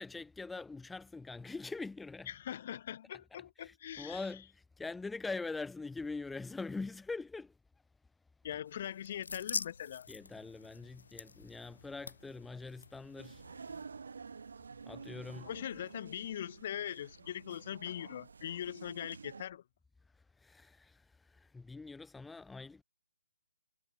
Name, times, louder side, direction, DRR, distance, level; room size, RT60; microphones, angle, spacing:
voice 1, 0.0-2.3 3.1-3.2 3.6-7.5 10.1-13.4 14.9-15.5 20.4-22.8, left 3 dB, 5° left, 1.9 m, -43 dB
voice 2, 2.3-4.2 8.4-10.1 15.4-19.6, left 10 dB, 35° left, 3.6 m, -41 dB
sound 1, 8.7-13.8, left 4 dB, 85° left, 1.5 m, -45 dB
sound 2, 13.2-19.4, right 5 dB, 75° right, 3.2 m, -50 dB
hypercardioid pair, 170°, 0 cm